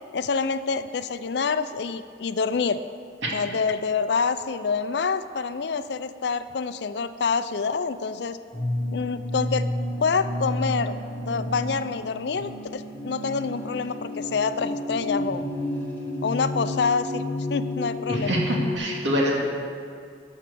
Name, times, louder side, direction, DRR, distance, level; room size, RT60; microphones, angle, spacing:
voice 1, 0.1-2.8 3.3-8.4 8.9-9.7 10.0-11.0 11.3-15.4 16.2-17.2 17.5-18.4, left 5 dB, 60° left, 12 dB, 0.4 m, -27 dB
sound 1, 8.5-18.8, left 1 dB, 10° left, 1.4 m, -31 dB
voice 2, 18.1-19.4, equal, 80° right, -2 dB, 2.3 m, -25 dB
13.0 x 6.1 x 6.9 m, 2.4 s
head